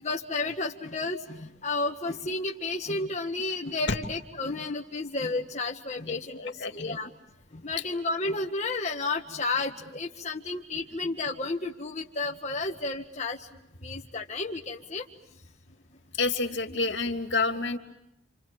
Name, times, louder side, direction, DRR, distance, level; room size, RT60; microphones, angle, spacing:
voice 1, 0.0-7.1 7.5-13.5 13.8-15.0, left 3 dB, 35° left, 1 dB, 1.7 m, -32 dB
voice 2, 6.3-7.0 16.2-17.8, left 3 dB, 65° left, 5 dB, 3.0 m, -28 dB
29.5 x 27.5 x 7.2 m, 0.84 s
head